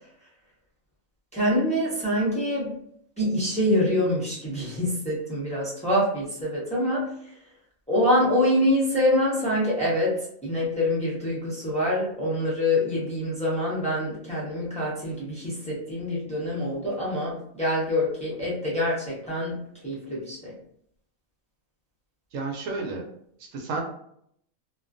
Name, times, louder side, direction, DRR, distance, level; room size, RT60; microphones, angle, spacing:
voice 1, 1.3-2.7 3.2-7.1 7.9-19.6 19.8-20.5, left 1 dB, 5° left, -7 dB, 0.6 m, -25 dB
voice 2, 22.3-23.0 23.4-23.8, right 3 dB, 70° right, 1 dB, 1.0 m, -31 dB
2.4 x 2.2 x 2.5 m, 0.69 s
omnidirectional pair, 1.4 m